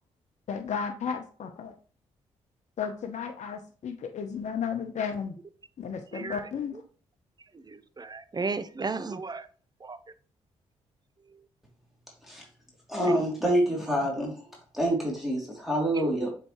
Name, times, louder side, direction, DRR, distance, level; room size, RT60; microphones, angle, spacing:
voice 1, 0.5-1.7 2.8-5.4 5.8-6.8, left 6 dB, 55° left, 5 dB, 0.8 m, -33 dB
voice 2, 7.5-9.5 9.8-10.0 13.1-13.2 16.0-16.2, right 4 dB, 30° right, 13 dB, 0.7 m, -34 dB
voice 3, 12.9-14.4 14.7-16.3, right 1 dB, ahead, -3 dB, 3.0 m, -27 dB
7.5 x 4.7 x 3.1 m, 0.40 s
hypercardioid pair, 40°, 14 cm